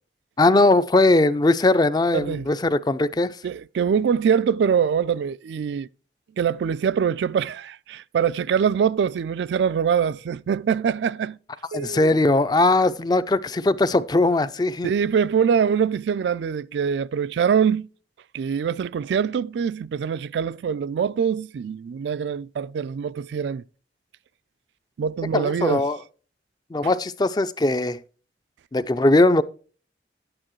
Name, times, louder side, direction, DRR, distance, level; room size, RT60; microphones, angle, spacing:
voice 1, 0.4-3.4 11.7-14.9 25.3-26.0 26.7-28.0 28.7-29.4, left 2 dB, 25° left, 0.4 m, -20 dB
voice 2, 2.1-2.5 3.4-5.9 6.4-11.4 11.7-12.1 14.8-17.9 18.3-23.6 25.0-25.8, right 7 dB, 75° right, 0.3 m, -23 dB
10.5 x 8.8 x 3.0 m
head